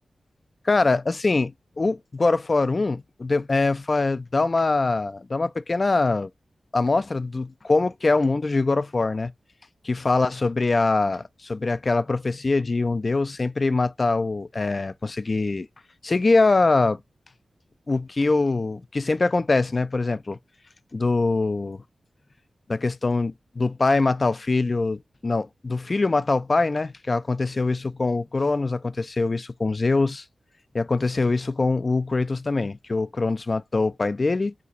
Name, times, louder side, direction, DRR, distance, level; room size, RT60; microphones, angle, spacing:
voice 1, 0.7-6.3 6.7-9.3 9.8-15.7 16.0-17.0 17.9-20.4 20.9-21.8 22.7-30.2 30.7-34.5, left 3 dB, 45° left, 0.3 m, -23 dB
2.9 x 2.4 x 4.0 m
cardioid pair, 55°, 0 cm